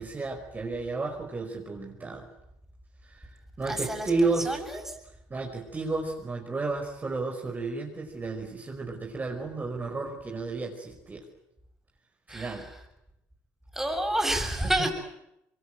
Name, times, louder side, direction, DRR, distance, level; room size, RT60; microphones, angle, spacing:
voice 1, 0.0-2.3 3.0-3.3 3.6-4.6 5.3-11.2 12.3-12.7 14.8-14.9, right 3 dB, 25° right, 1 dB, 5.2 m, -32 dB
voice 2, 3.7-4.1 4.4-4.8 12.3-12.7 13.7-14.9, right 1 dB, 5° right, 4 dB, 7.3 m, -29 dB
25.0 x 23.0 x 9.2 m, 0.84 s
supercardioid pair, 80°, 6 cm